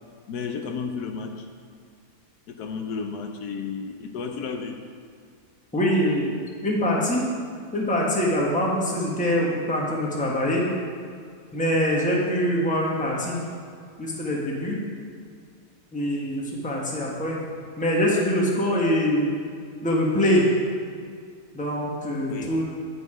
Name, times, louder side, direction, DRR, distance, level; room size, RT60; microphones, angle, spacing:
voice 1, 0.3-1.5 2.5-4.8 22.3-22.5, left 5 dB, 75° left, 5 dB, 1.2 m, -32 dB
voice 2, 5.7-7.3 7.7-10.7 11.5-13.4 14.0-14.8 15.9-17.4 17.8-19.3 19.8-20.5 21.5-22.6, equal, 5° left, -3 dB, 1.0 m, -24 dB
9.6 x 5.1 x 4.8 m, 2.1 s
omnidirectional pair, 1.7 m